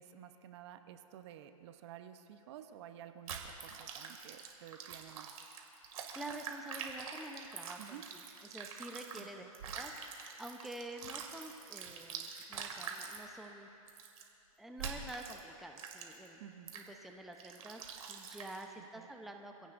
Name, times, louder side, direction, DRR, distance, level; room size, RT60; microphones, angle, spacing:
voice 1, 0.0-5.3 7.8-8.0 9.2-9.5 16.4-16.7 19.0-19.1, right 10 dB, 45° right, 8 dB, 0.9 m, -52 dB
sound 1, 3.3-9.2 9.5-13.2 13.9-14.2 14.8-15.4 15.8-16.3 16.7-16.9 17.4-18.6, right 6 dB, 70° right, 2.3 m, -45 dB
voice 2, 6.1-9.4 9.7-14.0 14.6-16.4 16.7-19.7, right 1 dB, ahead, 3 dB, 0.8 m, -48 dB
26.0 x 17.0 x 2.6 m, 2.8 s
hypercardioid pair, 135°, 19 cm